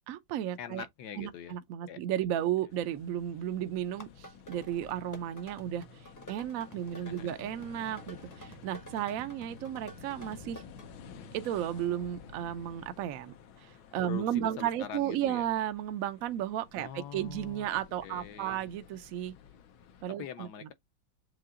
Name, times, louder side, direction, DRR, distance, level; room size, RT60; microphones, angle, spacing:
voice 1, 0.1-0.9 1.2-5.9 6.3-10.6 11.3-19.3 20.0-20.5, right 11 dB, 75° right, 0.7 m, -34 dB
voice 2, 0.6-1.6 1.9-2.0 2.4-2.5 6.9-7.3 14.0-15.5 16.8-18.6 20.2-20.7, left 9 dB, 70° left, 1.0 m, -44 dB
sound 1, 2.7-20.0, left 8 dB, 90° left, 1.6 m, -53 dB
sound 2, 3.9-10.9, right 1 dB, 20° left, 0.5 m, -51 dB
sound 3, 7.5-12.8, right 1 dB, 40° right, 0.7 m, -54 dB
7.6 x 2.8 x 2.4 m
omnidirectional pair, 2.1 m